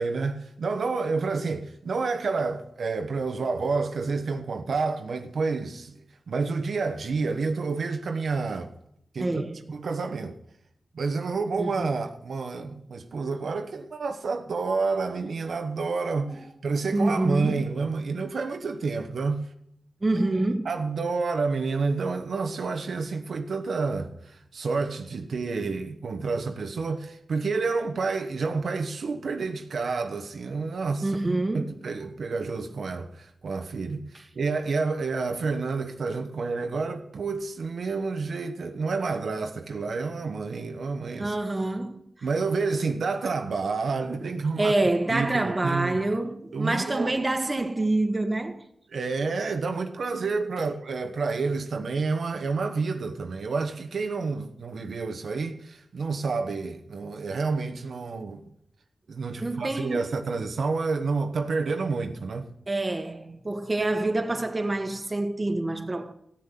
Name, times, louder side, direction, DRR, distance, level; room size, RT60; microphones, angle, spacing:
voice 1, 0.0-6.0 6.3-8.7 9.1-9.4 9.7-10.4 10.9-19.5 20.6-41.3 42.2-44.7 45.1-46.0 46.5-47.2 48.9-58.4 59.1-62.5, right 4 dB, 75° right, 1.0 m, -29 dB
voice 2, 9.2-9.6 11.6-11.9 16.2-16.4 16.9-17.7 20.0-20.7 31.0-31.7 41.2-42.3 44.6-48.6 59.4-60.2 62.7-66.1, right 2 dB, 30° right, 1.5 m, -27 dB
15.0 x 6.9 x 9.1 m
cardioid pair, 60°, 0 cm